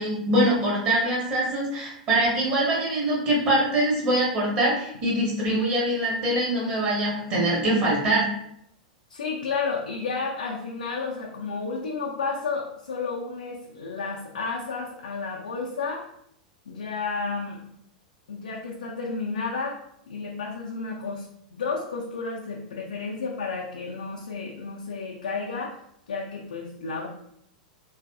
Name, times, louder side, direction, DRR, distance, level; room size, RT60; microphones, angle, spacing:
voice 1, 0.0-8.3, right 1 dB, 40° right, -4 dB, 1.0 m, -23 dB
voice 2, 9.1-16.1 16.7-17.6 18.3-19.8 20.1-21.3 21.5-25.8 26.1-27.1, left 4 dB, 65° left, -2 dB, 0.4 m, -31 dB
2.5 x 2.4 x 2.3 m, 0.73 s
figure-of-eight pair, 95°, 4 cm